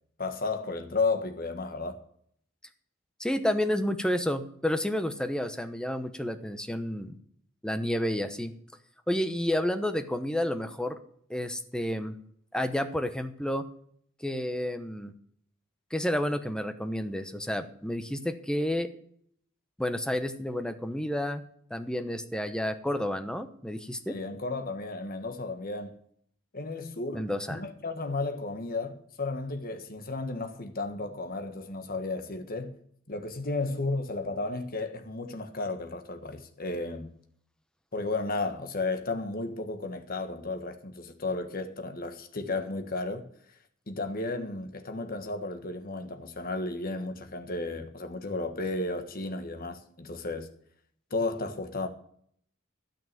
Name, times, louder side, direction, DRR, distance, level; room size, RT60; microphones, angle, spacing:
voice 1, 0.2-2.0 24.1-26.0 26.5-32.8 33.1-37.1 37.9-43.3 43.9-50.5 51.1-51.9, left 3 dB, 45° left, 1.5 m, -33 dB
voice 2, 3.2-7.2 7.6-8.5 9.1-11.0 11.3-12.1 12.5-13.6 14.2-15.1 15.9-18.9 19.8-21.4 21.7-24.2 27.1-27.6, left 1 dB, 5° left, 0.9 m, -30 dB
12.5 x 6.0 x 9.0 m
head